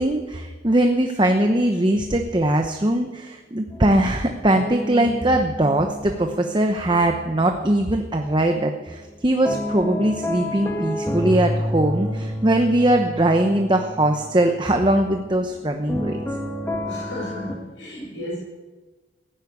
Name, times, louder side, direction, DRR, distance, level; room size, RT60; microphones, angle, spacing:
voice 1, 0.0-16.2, right 1 dB, 25° right, 5 dB, 0.9 m, -21 dB
sound 1, 3.7-7.8 8.1-17.5, left 1 dB, 10° left, 1.6 m, -30 dB
voice 2, 16.8-18.4, left 1 dB, 80° left, -4 dB, 6.1 m, -33 dB
16.0 x 10.5 x 8.2 m, 1.3 s
head